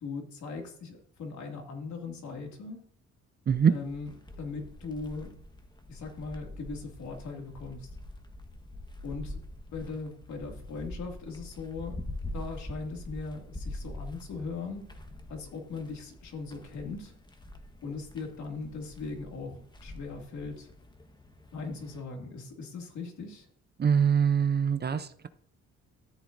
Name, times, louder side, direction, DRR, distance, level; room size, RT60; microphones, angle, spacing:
voice 1, 0.0-2.8 3.7-5.3 5.9-7.9 9.0-9.4 9.7-12.0 12.3-14.9 15.3-17.1 17.8-20.7 21.5-23.5, left 4 dB, 70° left, 2 dB, 2.4 m, -39 dB
sound 1, 3.5-22.0, left 1 dB, 15° left, 1.4 m, -45 dB
voice 2, 23.8-25.3, right 7 dB, 35° right, 13 dB, 0.6 m, -24 dB
13.5 x 8.1 x 2.6 m, 0.64 s
cardioid pair, 90°, 30 cm